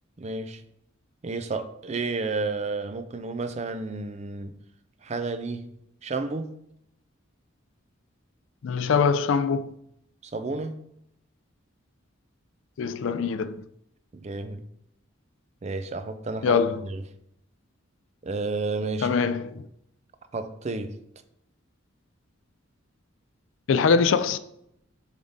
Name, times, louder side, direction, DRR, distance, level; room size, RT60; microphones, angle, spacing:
voice 1, 0.2-0.6 1.2-4.6 5.0-5.7 6.0-6.5 10.2-10.8 14.1-14.7 15.6-16.6 16.9-17.0 18.2-19.2 20.3-21.0, right 3 dB, 30° right, 0.4 m, -31 dB
voice 2, 8.6-9.7 12.8-13.6 16.4-16.9 19.0-19.7 23.7-24.4, left 5 dB, 65° left, 0.4 m, -23 dB
7.1 x 3.7 x 3.9 m
head